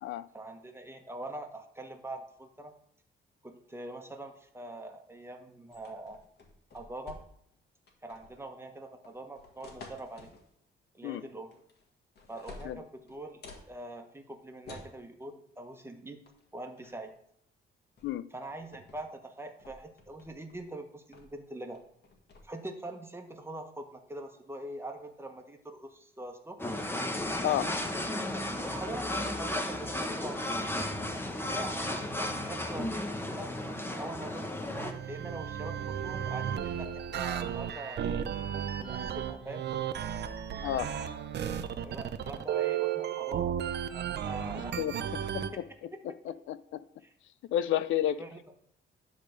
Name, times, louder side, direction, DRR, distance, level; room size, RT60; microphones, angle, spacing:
voice 1, 0.3-2.7 3.4-6.2 6.7-7.2 8.0-10.3 10.9-11.5 12.3-16.2 16.5-17.1 18.3-21.8 22.4-26.6 28.6-30.5 31.2-33.5 34.0-38.0 38.5-39.6 41.8-43.6 43.9-44.8 45.5-45.6 45.9-46.0 47.0-47.1 48.1-48.4, right 1 dB, 10° right, 1.2 m, -43 dB
sound 1, 5.7-7.6 7.9-8.4 9.0-10.5 11.5-11.9 12.2-13.7 14.6-15.0 16.3-16.4 16.8-17.1 18.0-18.1 18.4-19.0 19.4-20.6 21.1-21.4 21.7-22.4, left 3 dB, 55° left, 1.8 m, -51 dB
sound 2, 26.6-34.9, left 1 dB, 10° left, 1.0 m, -34 dB
voice 2, 27.4-27.8 40.6-40.9 44.8-45.5 46.3-46.8 47.5-48.2, left 12 dB, 75° left, 0.5 m, -31 dB
sound 3, 34.7-45.5, right 9 dB, 60° right, 0.7 m, -34 dB
10.5 x 3.6 x 6.4 m
cardioid pair, 90°, 20 cm